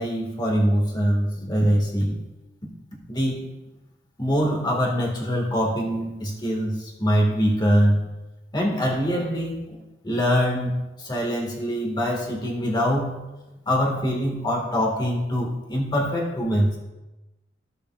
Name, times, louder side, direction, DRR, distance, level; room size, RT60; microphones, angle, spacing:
voice 1, 0.0-2.2 3.1-3.4 4.2-8.0 8.5-9.8 10.0-13.2 13.7-16.8, equal, 25° left, -1 dB, 2.1 m, -23 dB
15.5 x 6.7 x 2.6 m, 1.0 s
head